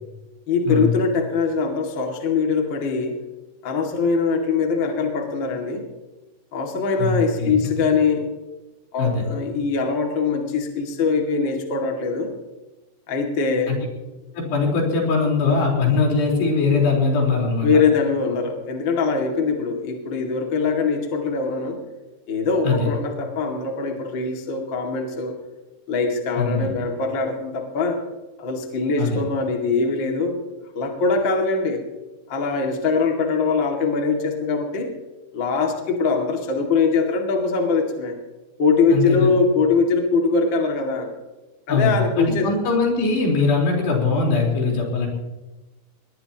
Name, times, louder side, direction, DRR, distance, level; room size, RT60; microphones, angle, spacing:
voice 1, 0.5-3.2 3.6-5.8 6.5-8.2 8.9-12.3 13.1-13.7 17.6-21.8 22.3-25.3 25.9-28.0 28.4-30.4 30.7-31.8 32.3-34.9 35.3-38.2 38.6-41.1 41.7-42.5, left 4 dB, 35° left, 2 dB, 2.3 m, -22 dB
voice 2, 14.3-17.8 22.6-22.9 26.4-26.7 29.0-29.2 38.9-39.3 41.7-45.1, left 4 dB, 80° left, -1 dB, 6.4 m, -21 dB
20.5 x 20.5 x 3.0 m, 1.1 s
omnidirectional pair, 4.8 m